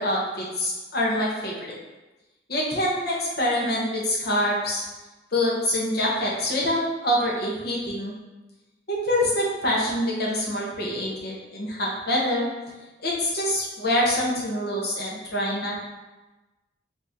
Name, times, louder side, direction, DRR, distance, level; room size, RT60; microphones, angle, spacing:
voice 1, 0.0-1.7 2.5-4.8 5.3-8.1 8.9-12.5 13.0-15.8, left 1 dB, 55° left, -4 dB, 1.1 m, -25 dB
4.1 x 3.1 x 3.6 m, 1.1 s
head